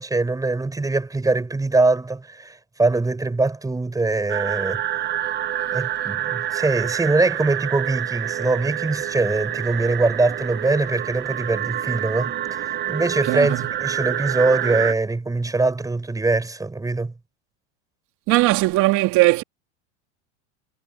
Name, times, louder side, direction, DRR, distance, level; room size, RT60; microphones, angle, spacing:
voice 1, 0.0-4.8 5.7-17.1, right 3 dB, 10° right, 8.0 m, -22 dB
sound 1, 4.3-14.9, right 11 dB, 30° right, 1.4 m, -27 dB
voice 2, 13.3-13.6 18.3-19.4, right 20 dB, 50° right, 3.7 m, -18 dB
supercardioid pair, 135°, 37 cm